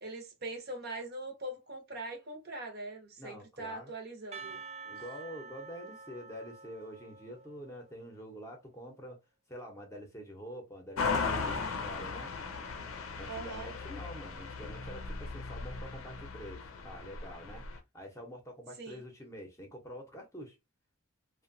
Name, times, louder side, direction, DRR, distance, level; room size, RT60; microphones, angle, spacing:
voice 1, 0.0-4.6 13.3-13.7 18.8-19.0, right 2 dB, 45° right, 0.7 m, -42 dB
voice 2, 3.2-3.9 4.8-9.2 9.5-12.3 13.2-17.6 17.9-20.6, equal, 15° left, 0.7 m, -46 dB
Percussion, 4.3-8.2, right 5 dB, 30° right, 0.3 m, -48 dB
sound 1, 11.0-17.8, left 4 dB, 70° left, 0.6 m, -37 dB
2.9 x 2.2 x 2.6 m
head